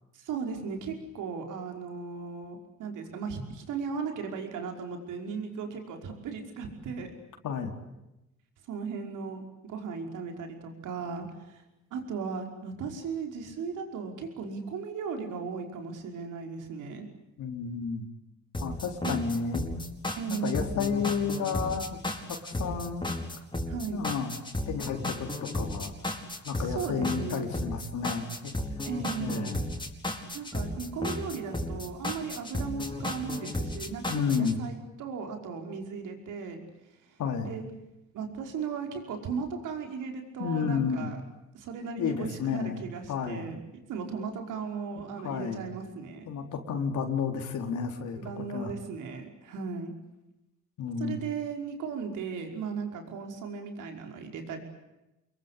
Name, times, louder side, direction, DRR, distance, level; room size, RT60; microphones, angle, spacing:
voice 1, 0.1-7.1 8.7-11.6 11.9-17.1 19.0-19.2 20.2-20.7 23.7-24.0 26.6-27.5 28.8-29.6 30.3-36.6 37.5-37.6 38.1-41.2 41.5-46.3 48.1-49.9 51.0-54.6, right 5 dB, 85° right, 4 dB, 5.3 m, -36 dB
voice 2, 17.4-18.1 18.6-19.8 20.3-22.0 22.3-23.1 23.9-25.9 26.4-28.5 29.2-29.6 34.1-34.6 37.2-37.5 40.4-41.1 42.0-42.8 43.1-43.5 45.2-45.7 46.3-48.7 50.8-51.2, left 6 dB, 75° left, 3 dB, 4.2 m, -31 dB
sound 1, 18.5-34.5, left 1 dB, 15° left, 4.9 m, -34 dB
28.0 x 22.5 x 8.4 m, 0.94 s
cardioid pair, 90°, 30 cm